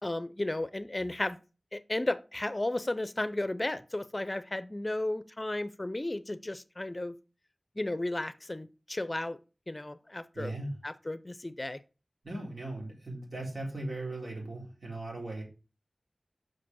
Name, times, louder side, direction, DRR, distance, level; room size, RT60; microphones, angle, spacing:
voice 1, 0.0-1.4 1.7-7.1 7.8-9.4 9.7-10.6 10.8-11.8, left 1 dB, 35° left, 14 dB, 0.6 m, -34 dB
voice 2, 10.3-10.8 12.2-15.4, right 2 dB, 65° right, -2 dB, 3.9 m, -38 dB
6.0 x 5.0 x 6.2 m, 0.33 s
wide cardioid pair, 50°, 0 cm